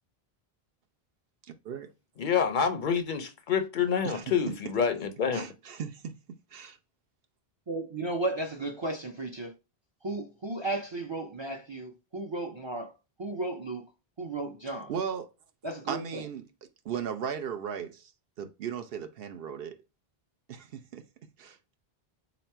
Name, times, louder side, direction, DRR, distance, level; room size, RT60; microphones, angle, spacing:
voice 1, 2.2-5.5, left 7 dB, 60° left, 0.6 m, -27 dB
voice 2, 5.3-6.1 6.5-6.8 14.7-15.3 15.9-16.4 16.8-18.1 18.4-19.7 20.5-21.0 21.4-21.6, right 7 dB, 70° right, 0.8 m, -36 dB
voice 3, 7.7-9.5 10.0-12.9 13.2-13.9 14.2-14.9 15.6-16.2, right 2 dB, 40° right, 0.4 m, -34 dB
3.9 x 3.0 x 4.4 m
omnidirectional pair, 1.0 m